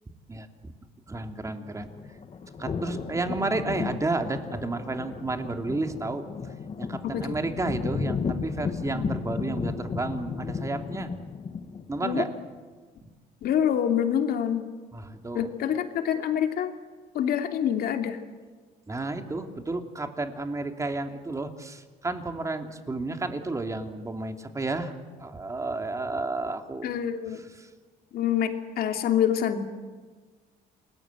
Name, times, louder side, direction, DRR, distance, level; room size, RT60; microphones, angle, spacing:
voice 1, 0.3-0.7 1.1-1.9 2.6-11.1 11.9-12.3 14.9-15.5 18.9-24.9 25.2-26.9 27.6-27.7, right 2 dB, 20° right, 6 dB, 2.8 m, -32 dB
sound 1, 1.6-12.0, left 5 dB, 35° left, 1.8 m, -34 dB
voice 2, 7.0-7.4 12.0-12.2 13.4-14.7 15.3-16.7 17.1-18.2 26.8-27.4 28.1-29.6, left 9 dB, 65° left, 5 dB, 3.0 m, -26 dB
28.5 x 21.0 x 9.2 m, 1.4 s
cardioid pair, 110°, 17 cm